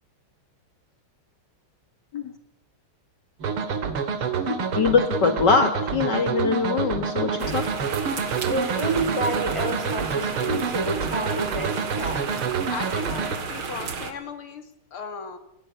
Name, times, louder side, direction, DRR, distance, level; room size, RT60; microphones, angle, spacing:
sound 1, 3.4-13.4, right 6 dB, 90° right, 2.8 m, -28 dB
voice 1, 4.5-7.6 10.5-10.6, left 5 dB, 55° left, 9 dB, 2.2 m, -23 dB
sound 2, 7.4-14.1, right 5 dB, 75° right, 3.1 m, -33 dB
voice 2, 8.4-12.2, right 2 dB, 15° right, 6 dB, 4.4 m, -29 dB
voice 3, 12.7-14.6 14.9-15.4, left 5 dB, 90° left, 10 dB, 3.3 m, -36 dB
23.0 x 19.0 x 9.8 m, 0.76 s
omnidirectional pair, 2.3 m